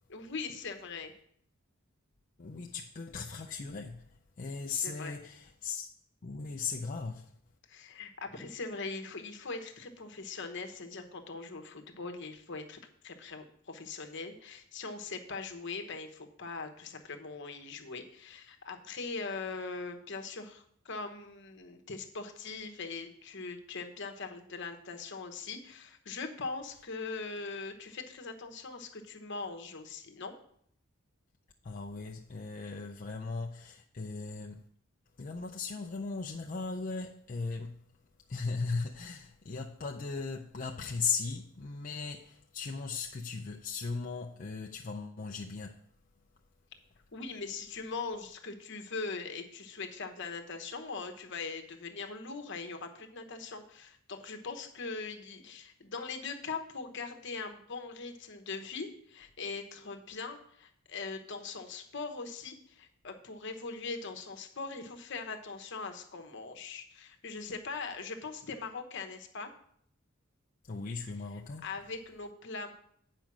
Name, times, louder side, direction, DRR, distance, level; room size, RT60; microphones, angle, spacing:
voice 1, 0.1-1.1 4.7-5.2 7.7-30.3 47.1-69.5 71.6-72.7, left 4 dB, 60° left, 1.1 m, -41 dB
voice 2, 2.4-5.9 6.2-7.3 31.6-34.7 35.2-37.8 38.3-45.8 70.6-71.7, left 4 dB, 40° left, 0.5 m, -37 dB
9.0 x 5.1 x 6.1 m
head